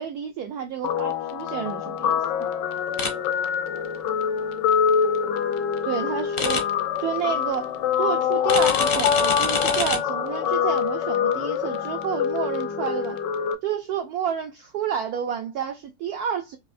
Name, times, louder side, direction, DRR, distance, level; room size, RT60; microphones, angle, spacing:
voice 1, 0.0-2.2 5.8-6.7 7.0-13.2 13.6-16.6, right 8 dB, 80° right, 0.8 m, -30 dB
Guitar, 0.8-13.5, left 7 dB, 75° left, 1.1 m, -25 dB
sound 1, 3.0-3.1 6.4-6.6 8.5-10.0, left 5 dB, 55° left, 0.7 m, -25 dB
4.6 x 2.7 x 2.5 m
omnidirectional pair, 2.1 m